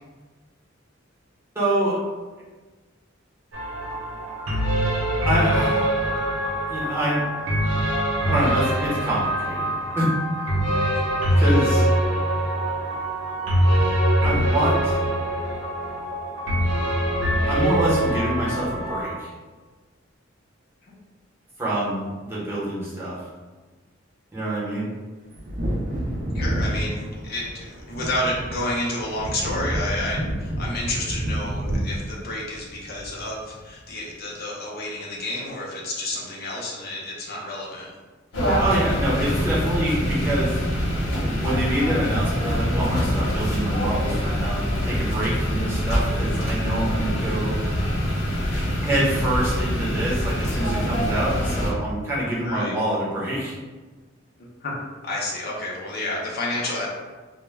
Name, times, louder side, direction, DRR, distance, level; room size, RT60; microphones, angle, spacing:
voice 1, 1.5-2.0 5.2-6.2 6.7-7.2 8.3-10.1 11.3-11.9 14.2-15.0 17.5-19.3 21.6-23.2 24.3-24.9 38.6-40.6 41.1-47.6 48.8-53.5, right 1 dB, 15° right, -8 dB, 0.8 m, -26 dB
sound 1, 3.5-19.0, right 1 dB, 80° right, 0.7 m, -23 dB
Wind / Thunder, 25.3-33.6 33.9-34.0, right 1 dB, 45° right, 0.4 m, -29 dB
voice 2, 26.3-37.9 38.3-38.6 50.7-50.8 52.4-52.8 54.4-54.7 55.0-56.9, left 1 dB, 55° left, -3 dB, 0.5 m, -30 dB
sound 2, 38.3-51.7, equal, 85° left, 0.9 m, -24 dB
2.2 x 2.1 x 3.3 m, 1.3 s
head